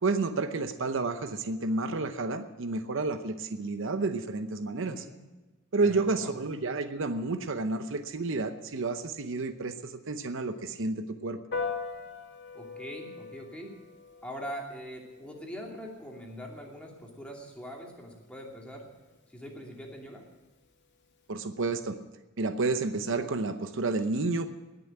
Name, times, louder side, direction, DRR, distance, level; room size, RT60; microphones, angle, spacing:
voice 1, 0.0-5.1 5.7-11.4 21.3-22.0 22.4-24.5, right 3 dB, 65° right, 9 dB, 0.8 m, -30 dB
voice 2, 4.7-5.2 5.8-6.3 12.5-13.8 14.2-18.9 19.3-20.2, equal, 5° left, -1 dB, 2.7 m, -42 dB
Piano, 11.5-21.3, left 4 dB, 60° left, 2.4 m, -43 dB
19.5 x 6.9 x 8.8 m, 1.2 s
head